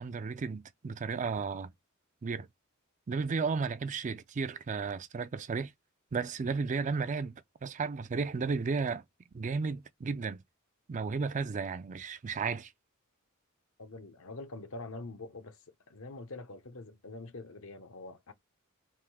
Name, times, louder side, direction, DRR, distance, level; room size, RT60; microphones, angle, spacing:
voice 1, 0.0-1.7 2.2-2.5 3.1-5.7 6.1-9.0 9.3-10.4 10.9-12.7, right 4 dB, 35° right, 0.4 m, -33 dB
voice 2, 13.8-15.6 15.9-18.3, left 2 dB, 65° left, 0.8 m, -45 dB
3.6 x 2.7 x 4.6 m
head